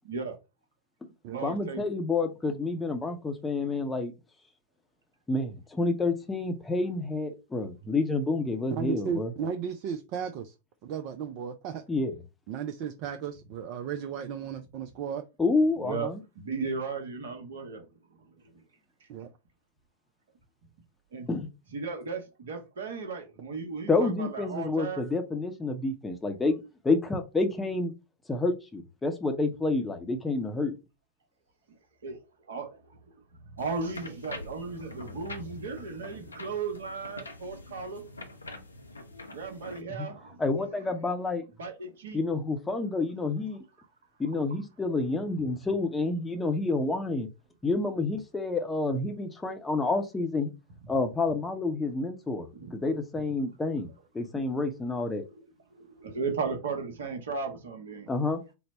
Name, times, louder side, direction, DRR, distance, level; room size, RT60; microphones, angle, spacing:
voice 1, 0.0-0.3 1.3-1.9 7.6-7.7 15.8-16.1 16.4-17.9 18.2-18.3 18.5-18.6 19.0-19.1 21.1-21.3 21.7-25.0 32.0-32.2 32.5-33.0 33.4-38.0 39.3-40.4 41.6-42.2 52.5-52.7 54.3-54.6 55.8-58.1, right 4 dB, 65° right, 0.9 m, -36 dB
voice 2, 1.4-4.1 5.3-9.3 11.9-12.2 15.4-16.2 21.3-21.5 23.9-27.9 28.3-30.7 40.0-40.1 40.4-41.4 42.1-43.6 44.2-47.3 47.6-50.5 50.9-55.2 58.1-58.4, left 3 dB, 10° left, 0.6 m, -29 dB
voice 3, 8.7-10.5 10.8-11.8 12.5-15.2 19.1-19.3, right 7 dB, 45° right, 0.4 m, -35 dB
sound 1, 33.6-39.8, left 2 dB, 80° left, 0.5 m, -45 dB
3.9 x 2.0 x 4.3 m
figure-of-eight pair, 90°, 0 cm